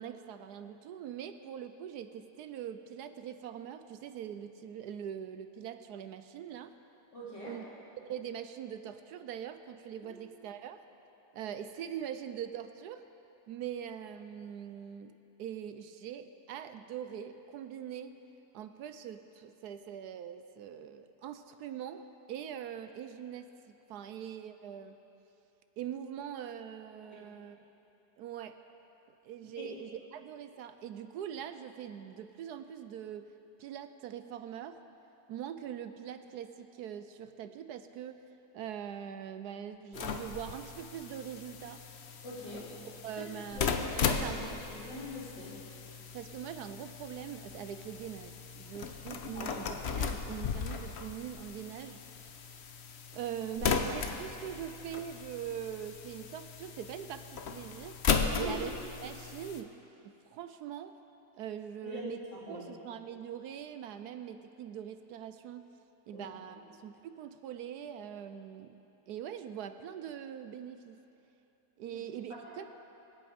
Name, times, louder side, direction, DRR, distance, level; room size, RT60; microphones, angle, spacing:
voice 1, 0.0-6.7 7.4-7.6 8.0-10.8 11.3-13.0 13.5-18.2 18.5-25.0 25.8-27.6 28.2-28.6 29.2-33.3 33.6-34.8 35.3-38.2 38.5-41.8 43.0-43.6 44.1-44.7 46.1-52.0 53.1-58.0 58.4-58.7 59.0-59.8 60.0-60.9 61.4-62.2 62.5-65.6 66.1-68.8 69.1-71.0 71.8-72.6, right 9 dB, 75° right, 10 dB, 1.1 m, -42 dB
voice 2, 7.1-7.6 10.0-10.1 27.0-27.3 29.6-29.7 42.2-42.8 43.2-44.3 44.6-45.6 49.3-49.6 58.3-58.6 61.8-62.7 66.1-66.3 71.9-72.0 72.3-72.4, left 1 dB, 80° left, -8 dB, 4.4 m, -43 dB
sound 1, 39.9-59.6, left 6 dB, 55° left, 0.8 m, -37 dB
24.0 x 8.6 x 5.1 m, 2.9 s
omnidirectional pair, 1.8 m